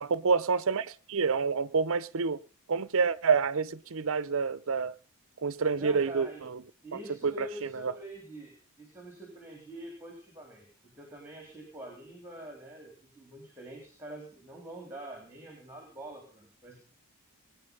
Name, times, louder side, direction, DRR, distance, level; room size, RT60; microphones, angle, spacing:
voice 1, 0.0-2.4 2.7-4.9 5.4-6.6 6.9-7.9, right 5 dB, 65° right, 0.7 m, -28 dB
voice 2, 5.8-6.4 6.8-10.7 10.9-16.8, right 1 dB, 10° right, 3.8 m, -45 dB
20.5 x 9.5 x 5.4 m
head